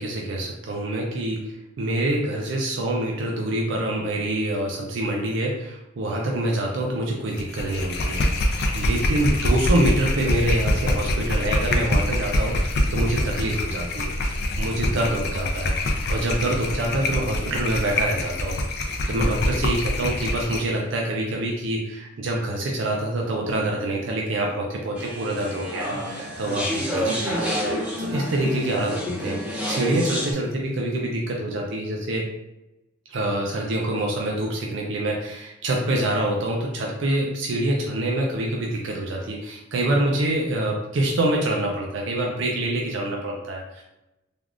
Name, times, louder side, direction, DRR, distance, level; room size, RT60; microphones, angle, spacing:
voice 1, 0.0-14.1 14.6-27.5 28.0-32.3 33.1-43.8, right 1 dB, 65° right, -1 dB, 0.4 m, -26 dB
sound 1, 7.3-20.7, left 1 dB, 55° left, 0.4 m, -25 dB
sound 2, 24.9-30.3, equal, 5° right, 0.5 m, -28 dB
3.4 x 2.4 x 2.4 m, 0.93 s
head